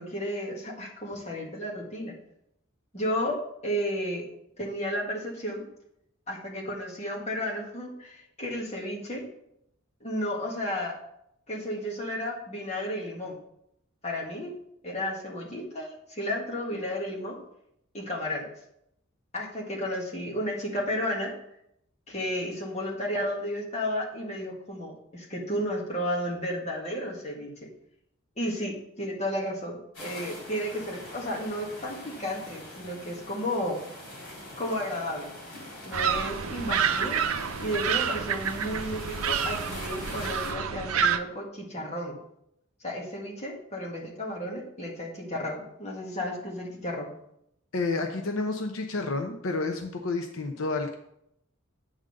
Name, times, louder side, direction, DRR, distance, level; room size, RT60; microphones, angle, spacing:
voice 1, 0.0-2.1 2.9-4.3 4.6-5.7 6.3-9.3 10.0-11.0 11.5-13.4 14.0-14.5 14.8-17.4 17.9-18.5 19.3-21.3 22.1-27.5 28.4-33.8 34.6-35.3 35.8-37.2 37.6-42.2 42.8-47.1, equal, 30° left, -2 dB, 1.7 m, -33 dB
sound 1, 29.9-40.5, left 1 dB, 60° left, 3.7 m, -43 dB
sound 2, 35.9-41.2, right 7 dB, 85° right, 0.6 m, -28 dB
voice 2, 47.7-51.0, left 3 dB, 75° left, 4 dB, 0.7 m, -30 dB
8.9 x 3.8 x 6.5 m, 0.77 s
head